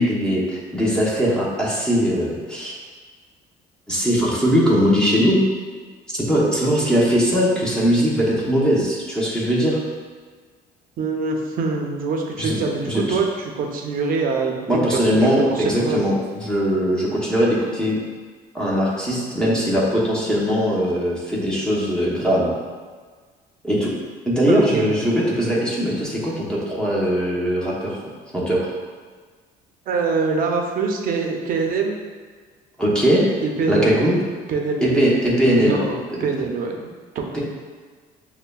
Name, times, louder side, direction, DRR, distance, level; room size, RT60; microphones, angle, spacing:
voice 1, 0.0-2.7 3.9-5.4 6.1-9.8 12.4-12.6 12.8-13.2 14.7-18.0 18.5-22.5 23.6-23.9 24.2-28.0 28.3-28.7 32.8-33.2 33.7-34.2 34.8-35.8 36.1-36.2 37.3-37.4, equal, 5° left, -6 dB, 0.8 m, -20 dB
voice 2, 11.0-16.0 24.5-24.9 29.9-32.0 33.4-33.9 34.5-34.9 35.5-36.9 37.1-37.4, right 4 dB, 55° right, 2 dB, 0.6 m, -24 dB
6.4 x 2.1 x 2.3 m, 1.5 s
cardioid pair, 110°, 17 cm